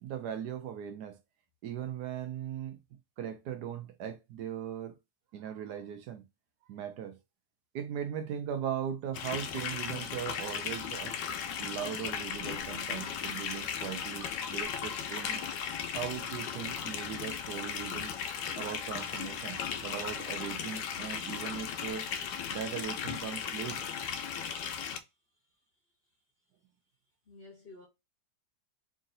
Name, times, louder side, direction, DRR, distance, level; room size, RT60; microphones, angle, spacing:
voice 1, 0.0-1.2 1.6-2.8 3.2-5.0 5.3-6.2 6.7-7.2 7.7-11.1 11.6-15.4 15.9-18.2 18.6-22.1 22.5-23.8, right 9 dB, 70° right, 1.2 m, -39 dB
sound 1, 9.1-25.0, left 7 dB, 80° left, 1.3 m, -36 dB
sound 2, 13.9-16.9, left 1 dB, 10° right, 1.0 m, -52 dB
voice 2, 25.3-25.6 27.2-27.9, left 3 dB, 45° left, 0.8 m, -53 dB
3.7 x 2.7 x 3.8 m
omnidirectional pair, 1.9 m